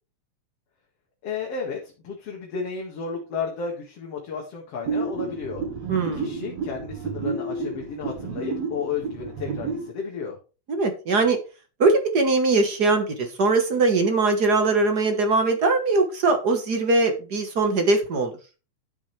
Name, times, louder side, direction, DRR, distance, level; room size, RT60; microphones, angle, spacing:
voice 1, 1.2-5.6 6.1-10.4, left 5 dB, 55° left, -1 dB, 2.9 m, -33 dB
sound 1, 4.9-9.9, right 4 dB, 65° right, 2.4 m, -30 dB
voice 2, 5.9-6.3 10.7-11.4 11.8-18.3, right 3 dB, 45° right, 6 dB, 1.5 m, -21 dB
12.0 x 7.4 x 3.3 m, 0.33 s
omnidirectional pair, 3.3 m